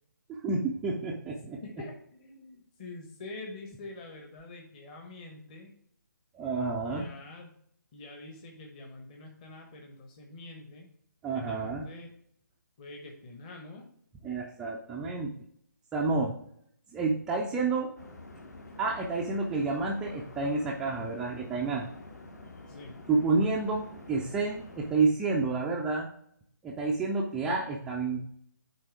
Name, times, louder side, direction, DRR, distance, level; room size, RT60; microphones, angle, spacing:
voice 1, 0.3-1.6 6.3-7.1 11.2-11.9 14.2-15.3 15.9-16.3 16.9-17.9 18.8-21.9 23.1-26.1 26.6-28.2, right 3 dB, 5° right, -2 dB, 0.4 m, -29 dB
voice 2, 1.6-5.7 6.8-7.6 7.9-10.9 11.3-12.1 12.8-13.9 22.7-23.0, left 2 dB, 25° left, 2 dB, 1.0 m, -46 dB
sound 1, 18.0-24.9, left 2 dB, 55° left, 1.3 m, -48 dB
8.7 x 3.3 x 4.6 m, 0.65 s
figure-of-eight pair, 140°, 10 cm